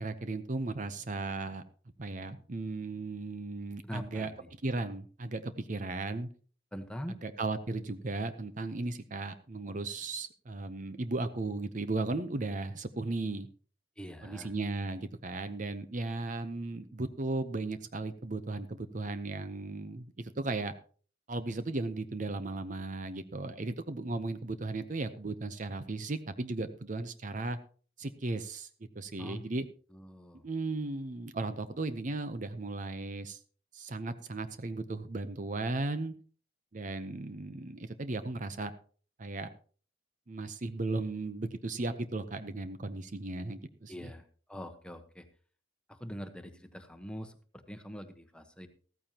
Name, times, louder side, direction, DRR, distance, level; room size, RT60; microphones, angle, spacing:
voice 1, 0.0-1.6 2.0-4.3 4.6-6.3 7.2-13.5 14.2-20.7 21.3-27.6 28.0-28.7 28.9-29.6 30.4-33.4 33.7-36.1 36.7-38.7 39.2-39.5 40.3-44.1, right 2 dB, 45° right, 11 dB, 0.7 m, -36 dB
voice 2, 3.8-4.5 6.7-7.2 14.0-14.5 29.2-29.6 29.9-30.5 43.9-45.3 45.9-48.7, equal, 5° left, 7 dB, 1.1 m, -44 dB
14.5 x 14.0 x 2.9 m, 0.42 s
head